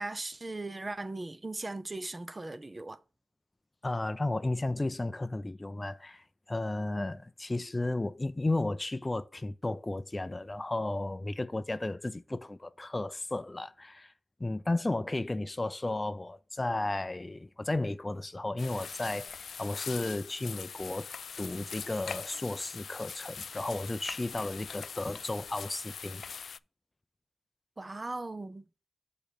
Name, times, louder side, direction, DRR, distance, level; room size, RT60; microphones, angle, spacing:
voice 1, 0.0-3.0 27.8-28.7, right 2 dB, 30° right, 0.8 m, -38 dB
voice 2, 3.8-14.1 14.4-21.1 21.4-26.2, left 2 dB, 25° left, 0.5 m, -34 dB
sound 1, 18.6-26.6, left 6 dB, 80° left, 0.3 m, -42 dB
7.4 x 4.7 x 5.0 m
cardioid pair, 75°, 0 cm